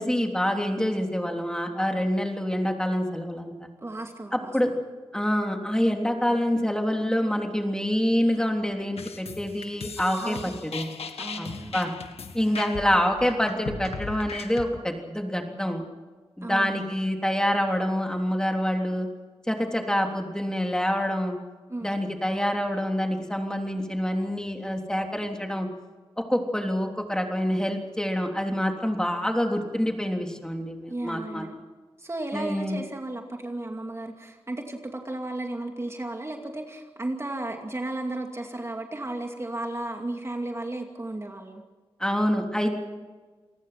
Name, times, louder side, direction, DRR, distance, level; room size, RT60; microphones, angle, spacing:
voice 1, 0.0-3.7 4.3-4.7 5.1-10.4 10.6-10.9 11.4-11.9 12.3-15.8 16.4-19.1 19.5-21.4 21.8-25.7 26.3-31.4 32.3-32.8 42.0-42.8, equal, 5° left, 2 dB, 3.4 m, -26 dB
voice 2, 3.8-4.7 10.2-10.6 11.2-11.8 12.5-12.7 16.4-16.8 21.7-21.9 30.9-31.6 32.0-41.6, right 2 dB, 25° right, 3 dB, 2.5 m, -34 dB
sound 1, 9.0-14.7, left 5 dB, 85° left, 1.9 m, -38 dB
28.5 x 19.5 x 6.0 m, 1.4 s
cardioid pair, 70°, 10 cm